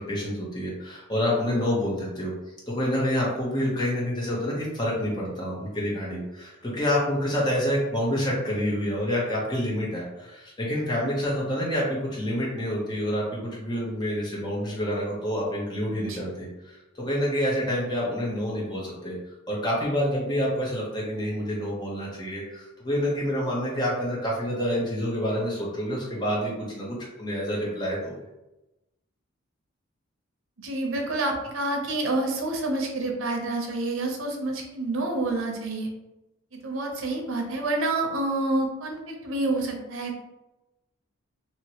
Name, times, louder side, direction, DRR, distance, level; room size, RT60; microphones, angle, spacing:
voice 1, 0.1-2.3 2.7-19.2 19.5-28.2, equal, 20° left, -5 dB, 0.8 m, -28 dB
voice 2, 30.6-35.9 36.6-40.2, right 2 dB, 80° right, 2 dB, 0.7 m, -28 dB
2.9 x 2.9 x 2.8 m, 0.97 s
head